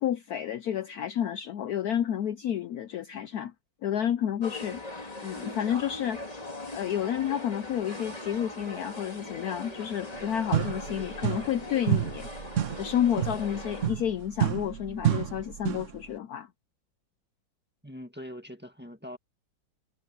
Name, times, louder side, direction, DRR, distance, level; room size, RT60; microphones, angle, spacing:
voice 1, 0.0-3.5 3.8-4.8 5.2-6.3 6.7-12.3 12.8-16.5, left 10 dB, 65° left, 1.0 m, -30 dB
sound 1, 4.4-13.9, left 2 dB, 20° left, 2.6 m, -40 dB
sound 2, 10.1-10.2 10.5-11.6 11.9-16.0, right 11 dB, 60° right, 0.8 m, -30 dB
voice 2, 17.8-19.2, equal, 5° right, 1.6 m, -42 dB
omnidirectional pair, 2.0 m